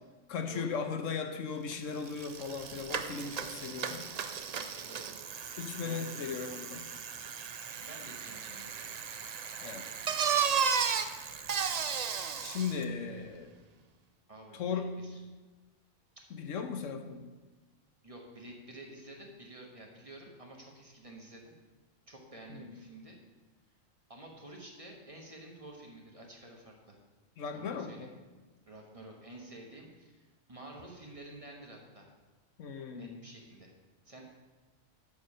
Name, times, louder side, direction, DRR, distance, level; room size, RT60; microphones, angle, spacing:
voice 1, 0.3-4.0 5.6-6.9 9.6-10.0 12.4-13.5 14.5-14.9 16.3-17.3 22.5-22.7 27.4-28.1 32.6-33.2, left 6 dB, 80° left, 5 dB, 1.2 m, -37 dB
Bicycle, 1.7-1.8 2.1-12.8, right 6 dB, 60° right, 0.4 m, -35 dB
voice 2, 4.5-5.1 5.8-6.5 7.8-8.9 14.3-15.2 16.1-16.2 18.0-21.5 22.1-23.2 24.1-27.0 27.5-28.1 28.6-32.1 32.9-33.7 34.0-34.2, right 1 dB, 30° right, 0 dB, 1.3 m, -50 dB
7.2 x 6.9 x 5.5 m, 1.3 s
omnidirectional pair, 1.3 m